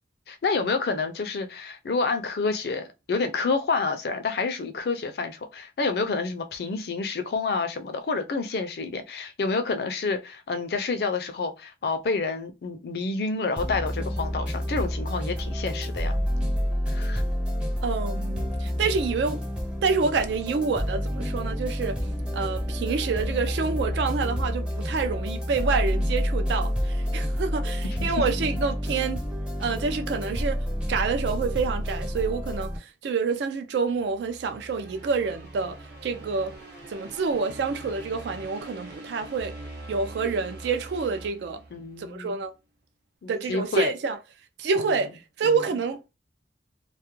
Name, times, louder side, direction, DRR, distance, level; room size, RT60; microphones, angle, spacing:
voice 1, 0.3-16.2 16.9-17.2 28.0-28.1 41.7-42.4 43.2-43.9 45.4-45.6, left 4 dB, 60° left, 0.4 m, -29 dB
sound 1, 13.6-32.8, equal, 5° right, 0.5 m, -29 dB
voice 2, 17.8-19.4 19.8-22.0 22.3-29.2 29.6-35.8 36.0-36.6 36.9-39.6 39.9-41.6 42.0-42.5 43.3-44.2 44.6-46.1, right 4 dB, 75° right, 0.3 m, -27 dB
sound 2, 33.9-42.2, right 2 dB, 55° right, 0.8 m, -43 dB
2.3 x 2.1 x 2.9 m
head